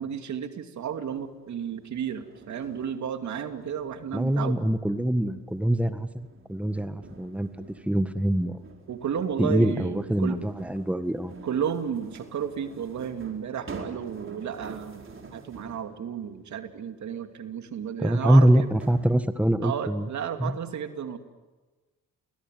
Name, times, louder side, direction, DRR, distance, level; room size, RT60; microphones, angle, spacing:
voice 1, 0.0-4.6 8.9-10.4 11.4-18.7 19.6-21.2, right 8 dB, 65° right, 7 dB, 2.6 m, -33 dB
sound 1, 0.8-16.0 17.7-17.8 18.5-19.1, right 4 dB, 40° right, 4.7 m, -48 dB
voice 2, 4.1-8.6 9.4-11.3 18.0-20.1 20.4-20.5, right 1 dB, 5° right, 10 dB, 1.7 m, -24 dB
28.5 x 21.0 x 9.3 m, 1.3 s
cardioid pair, 75°, 31 cm